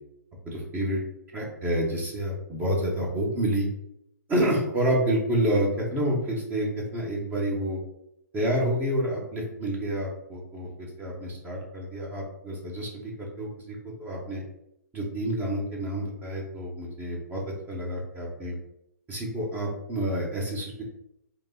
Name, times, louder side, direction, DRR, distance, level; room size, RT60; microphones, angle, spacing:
voice 1, 0.4-1.0 1.3-3.7 4.3-7.8 8.3-14.4 14.9-17.4 17.7-18.5 19.1-20.8, right 1 dB, 15° right, -3 dB, 1.3 m, -28 dB
5.2 x 2.1 x 4.0 m, 0.79 s
figure-of-eight pair, 125°, 10 cm